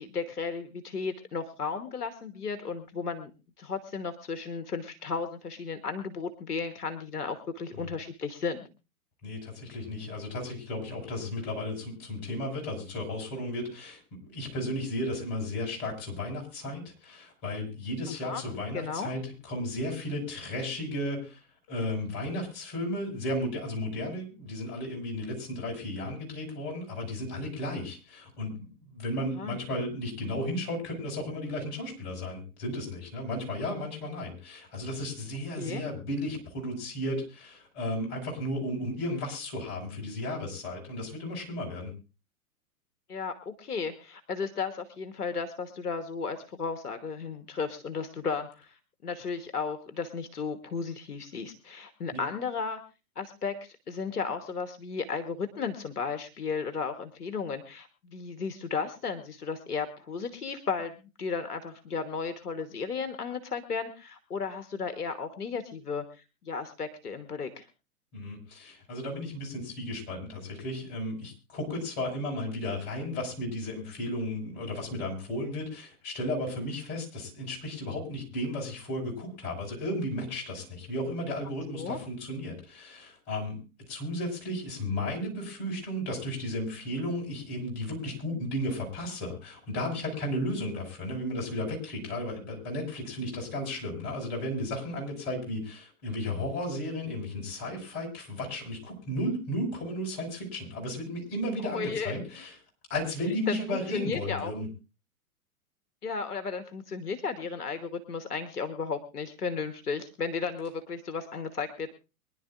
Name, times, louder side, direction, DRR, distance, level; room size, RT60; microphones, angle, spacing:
voice 1, 0.0-3.3 3.6-8.7 18.1-18.4 18.7-19.1 29.3-29.6 35.6-35.9 43.1-52.8 53.1-60.9 61.2-67.7 81.7-82.0 101.6-102.2 103.5-104.5 106.0-112.0, left 5 dB, 80° left, 8 dB, 1.4 m, -34 dB
voice 2, 9.2-14.0 14.3-21.4 21.7-41.9 52.1-52.2 68.1-83.6 83.9-102.5 102.9-104.7, left 1 dB, 40° left, 0 dB, 5.8 m, -34 dB
24.0 x 11.0 x 2.5 m, 0.30 s
hypercardioid pair, 120°, 45 cm